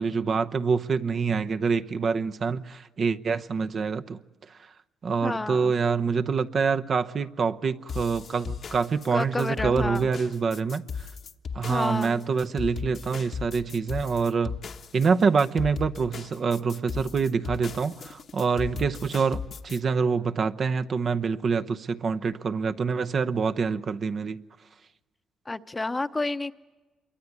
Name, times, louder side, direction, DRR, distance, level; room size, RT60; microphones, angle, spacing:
voice 1, 0.0-4.2 5.0-10.8 11.5-14.6 14.9-24.4, right 5 dB, 50° right, 0.8 m, -26 dB
voice 2, 5.2-5.7 9.1-10.1 11.7-12.2 25.5-26.5, left 2 dB, 20° left, 0.9 m, -30 dB
sound 1, 7.9-19.8, left 6 dB, 55° left, 1.1 m, -37 dB
27.0 x 23.0 x 9.5 m
cardioid pair, 90°, 0 cm